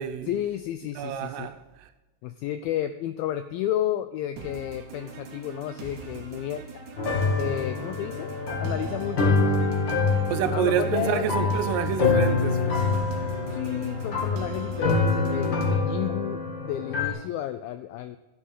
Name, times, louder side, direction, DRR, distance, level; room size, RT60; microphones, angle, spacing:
voice 1, 0.3-1.5 2.2-6.6 7.4-8.3 8.6-9.7 10.5-11.8 13.5-18.2, left 12 dB, 85° left, 2.1 m, -32 dB
voice 2, 1.0-1.9 10.3-12.8, right 9 dB, 80° right, 2.9 m, -28 dB
sound 1, 4.4-15.8, right 4 dB, 60° right, 2.1 m, -41 dB
sound 2, 7.0-17.1, left 4 dB, 50° left, 1.4 m, -26 dB
11.5 x 6.2 x 7.1 m
omnidirectional pair, 4.8 m